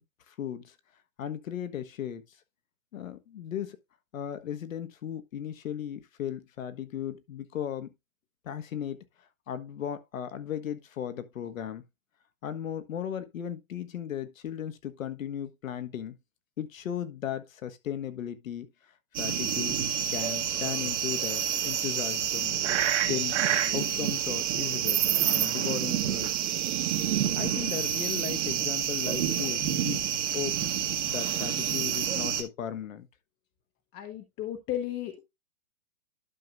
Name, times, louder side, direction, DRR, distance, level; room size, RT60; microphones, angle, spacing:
voice 1, 0.3-0.7 1.2-2.4 2.9-3.8 4.1-7.9 8.4-11.8 12.4-16.2 16.6-18.9 19.2-19.8 20.1-22.6 23.0-23.4 23.7-26.4 27.3-30.0 30.3-33.1, left 9 dB, 70° left, 1.5 m, -36 dB
sound 1, 19.1-32.4, right 10 dB, 55° right, 1.8 m, -28 dB
voice 2, 33.9-35.2, left 12 dB, 20° left, 1.0 m, -34 dB
12.0 x 5.7 x 2.5 m
hypercardioid pair, 150°, 41 cm